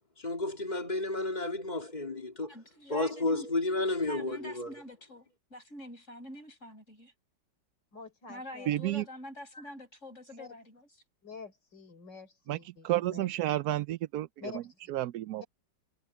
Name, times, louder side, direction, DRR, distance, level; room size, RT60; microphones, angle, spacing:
voice 1, 0.2-2.5 2.9-4.7, left 2 dB, 25° left, 3.2 m, -32 dB
voice 2, 2.4-3.5 4.1-7.1 8.3-10.9, left 1 dB, 40° left, 8.0 m, -46 dB
voice 3, 7.9-8.8 9.5-9.8 10.4-10.5 11.2-13.4 14.4-14.8, left 4 dB, 70° left, 4.6 m, -47 dB
voice 4, 8.7-9.0 12.5-12.6 12.8-14.6 14.9-15.4, right 14 dB, 70° right, 1.0 m, -31 dB
omnidirectional pair, 2.0 m